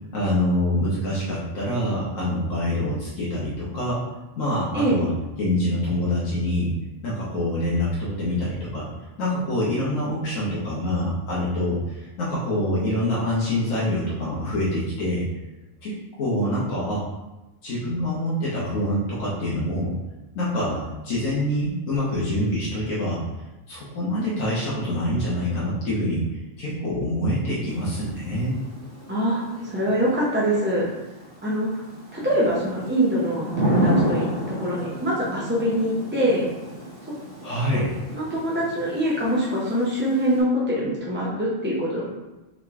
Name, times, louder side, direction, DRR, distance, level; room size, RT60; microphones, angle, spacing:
voice 1, 0.1-4.0 4.4-5.1 5.4-6.7 7.0-8.9 9.2-15.2 15.8-17.0 17.6-19.9 20.3-23.2 23.7-28.6 37.4-38.0, left 1 dB, 75° left, -8 dB, 1.2 m, -25 dB
Thunder / Rain, 27.7-40.4, right 1 dB, 50° right, 1.2 m, -31 dB
voice 2, 29.1-30.9 31.4-31.8 32.1-34.3 34.6-36.4 37.7-37.9 38.1-42.1, equal, 15° right, -6 dB, 0.3 m, -24 dB
3.8 x 3.0 x 3.4 m, 1.1 s
omnidirectional pair, 1.4 m